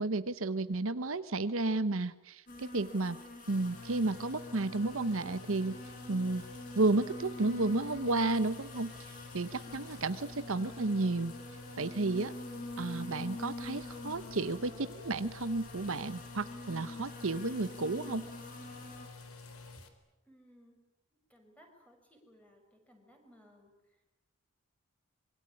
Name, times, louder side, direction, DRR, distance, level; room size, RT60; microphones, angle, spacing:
voice 1, 0.0-3.2 3.5-5.8 6.1-6.4 6.8-11.3 11.8-12.3 12.8-18.3, right 2 dB, 65° right, 13 dB, 0.9 m, -32 dB
sound 1, 2.5-19.1, left 2 dB, 40° left, 6.4 m, -46 dB
sound 2, 3.5-19.9, left 3 dB, 75° left, 3.9 m, -50 dB
voice 2, 20.2-20.8 21.3-24.0, equal, 5° left, 3 dB, 6.1 m, -61 dB
26.0 x 23.0 x 9.8 m, 1.0 s
head